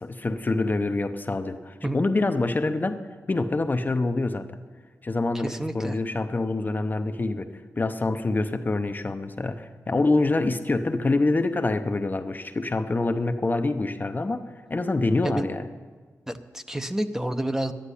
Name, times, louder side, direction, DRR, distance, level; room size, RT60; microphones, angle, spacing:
voice 1, 0.0-3.0 3.3-4.6 5.0-15.6, left 2 dB, 30° left, 8 dB, 0.7 m, -26 dB
voice 2, 5.4-6.0 15.2-15.5 16.3-17.7, right 1 dB, 10° right, 8 dB, 0.8 m, -29 dB
11.5 x 10.0 x 9.9 m, 1.5 s
cardioid pair, 80°, 6 cm